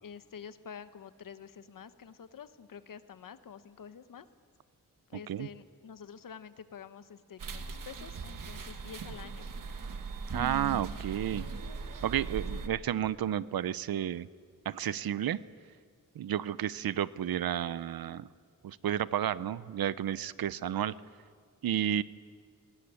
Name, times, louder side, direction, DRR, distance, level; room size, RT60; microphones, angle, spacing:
voice 1, 0.0-4.3 5.1-9.5 12.5-12.8, left 7 dB, 65° left, 11 dB, 1.1 m, -48 dB
sound 1, 7.4-12.7, right 4 dB, 65° right, 1.6 m, -39 dB
voice 2, 10.3-11.4 12.0-14.3 14.7-15.4 16.2-18.3 18.6-20.9 21.6-22.0, right 10 dB, 85° right, 17 dB, 0.7 m, -31 dB
20.0 x 19.0 x 9.7 m, 2.1 s
wide cardioid pair, 140°, 35 cm